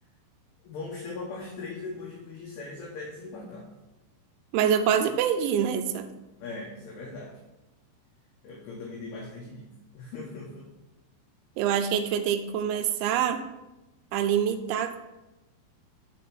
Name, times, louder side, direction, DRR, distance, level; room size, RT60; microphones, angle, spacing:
voice 1, 0.6-3.7 6.4-7.4 8.4-9.7 9.9-10.7, left 3 dB, 70° left, -2 dB, 2.9 m, -39 dB
voice 2, 4.5-6.1 11.6-13.4 14.1-15.0, right 8 dB, 85° right, 8 dB, 2.9 m, -25 dB
10.0 x 4.4 x 5.9 m, 1.0 s
omnidirectional pair, 5.3 m